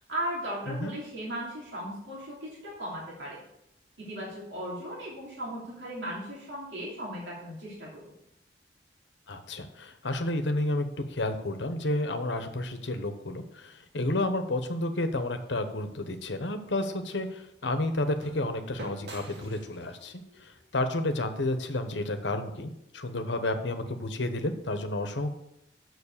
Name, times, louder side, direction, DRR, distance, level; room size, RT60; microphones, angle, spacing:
voice 1, 0.1-3.4 4.1-8.1, right 1 dB, 90° right, -5 dB, 2.9 m, -37 dB
voice 2, 9.3-25.3, left 2 dB, 85° left, 8 dB, 1.1 m, -31 dB
Empty glass brokes with young lady exclamation, 16.6-22.1, right 1 dB, 70° right, 1.9 m, -49 dB
7.2 x 6.4 x 6.8 m, 0.81 s
head